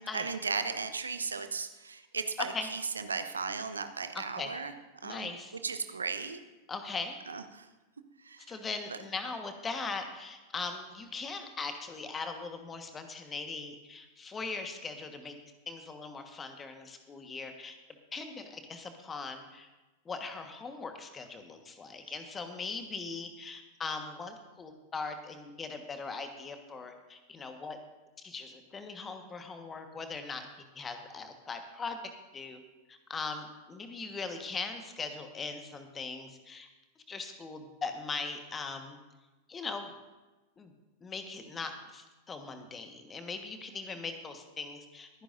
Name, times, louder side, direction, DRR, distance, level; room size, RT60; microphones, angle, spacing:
voice 1, 0.1-4.7 5.0-5.3 5.6-6.4 7.3-7.7 8.2-8.5 8.9-9.0, right 5 dB, 75° right, 10 dB, 0.9 m, -36 dB
voice 2, 2.4-2.7 4.4-4.6 5.0-5.6 6.7-7.2 8.5-15.4 15.7-17.8 18.1-19.7 20.0-27.8 28.2-30.5 30.7-32.0 32.3-32.6 32.9-36.7 37.1-39.0 39.5-40.0 40.6-40.7 41.0-45.2, left 4 dB, 20° left, 6 dB, 1.4 m, -40 dB
23.0 x 10.0 x 2.6 m, 1.1 s
figure-of-eight pair, 90°, 0 cm